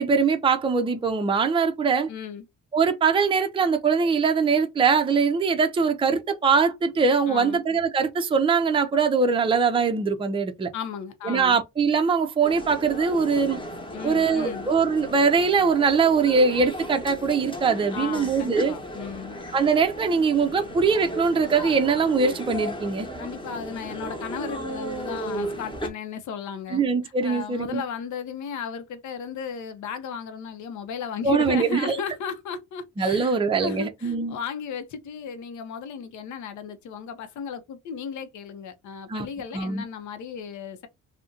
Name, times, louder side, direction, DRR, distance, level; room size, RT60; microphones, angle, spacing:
voice 1, 0.0-2.1 2.7-10.7 11.2-13.6 14.0-18.7 19.5-23.1 26.7-27.8 31.2-32.0 33.0-34.4 39.1-39.3 39.5-39.8, right 5 dB, 15° right, 0.5 m, -22 dB
voice 2, 2.1-2.4 7.3-7.6 10.7-11.6 13.9-14.7 17.9-19.4 23.2-26.8 27.2-40.9, left 6 dB, 75° left, 0.7 m, -35 dB
sound 1, 12.4-25.9, equal, 15° left, 1.0 m, -35 dB
2.5 x 2.1 x 3.7 m
cardioid pair, 90°, 30 cm